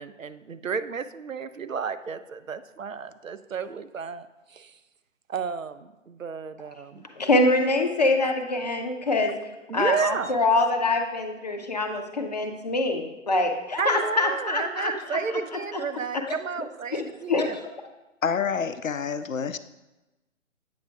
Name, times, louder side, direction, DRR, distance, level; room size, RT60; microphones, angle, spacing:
voice 1, 0.0-4.3 4.5-4.7 5.3-7.0 9.7-10.3 13.8-17.6, right 6 dB, 80° right, 12 dB, 0.5 m, -32 dB
voice 2, 7.2-9.3 9.7-15.2 15.7-15.8 16.3-16.4 16.9-17.5, left 2 dB, 35° left, 4 dB, 0.6 m, -24 dB
voice 3, 18.2-19.6, left 6 dB, 85° left, 13 dB, 0.5 m, -27 dB
8.5 x 6.3 x 2.3 m, 1.0 s
figure-of-eight pair, 140°, 39 cm